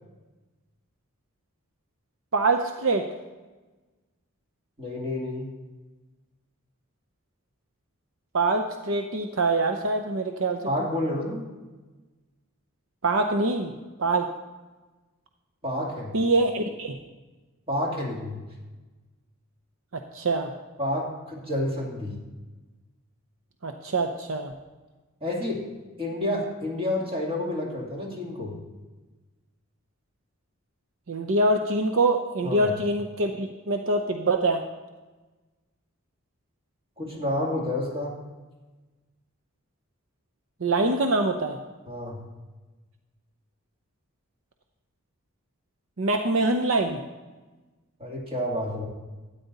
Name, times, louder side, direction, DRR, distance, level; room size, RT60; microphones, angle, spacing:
voice 1, 2.3-3.1 8.3-10.6 13.0-13.7 14.0-14.3 16.1-17.0 20.1-20.5 23.6-24.5 31.1-34.6 40.6-41.6 46.0-47.0, right 2 dB, 65° right, 5 dB, 0.7 m, -24 dB
voice 2, 4.8-5.5 10.6-11.4 15.6-16.2 17.7-18.4 20.8-22.2 25.2-25.6 26.0-28.6 32.4-32.7 37.0-38.1 41.9-42.3 48.0-48.9, left 1 dB, 25° right, -2 dB, 2.5 m, -29 dB
13.0 x 9.3 x 4.1 m, 1.2 s
head